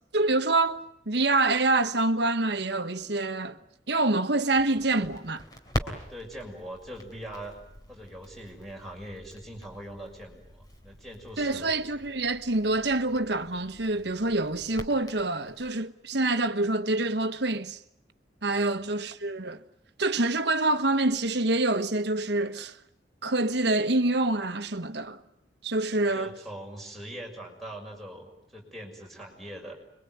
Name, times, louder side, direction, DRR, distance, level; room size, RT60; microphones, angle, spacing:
voice 1, 0.1-3.6 3.9-5.4 11.4-17.8 18.4-19.6 20.0-22.8 23.2-25.2 25.6-26.4, right 2 dB, 65° right, 1.3 m, -26 dB
Crackle, 4.5-15.7, equal, 20° left, 3.2 m, -42 dB
voice 2, 5.8-7.6 7.9-11.7 18.6-18.8 26.1-29.7, right 1 dB, ahead, 6.4 m, -42 dB
26.5 x 23.5 x 9.4 m
head